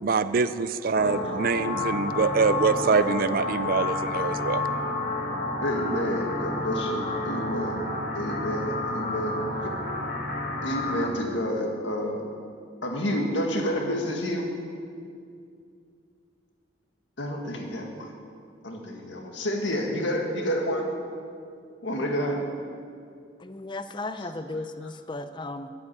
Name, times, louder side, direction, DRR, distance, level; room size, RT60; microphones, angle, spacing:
voice 1, 0.0-4.6, right 4 dB, 50° right, 13 dB, 0.4 m, -24 dB
sound 1, 1.0-11.1, left 2 dB, 50° left, 1.5 m, -30 dB
voice 2, 5.6-7.8 8.1-9.4 9.6-9.7 10.6-12.2 12.8-14.5 17.2-18.1 18.6-20.9 21.8-22.4, equal, 75° left, 1 dB, 1.9 m, -29 dB
voice 3, 23.4-25.7, left 2 dB, 25° left, 11 dB, 0.5 m, -35 dB
11.5 x 8.4 x 8.7 m, 2.4 s
head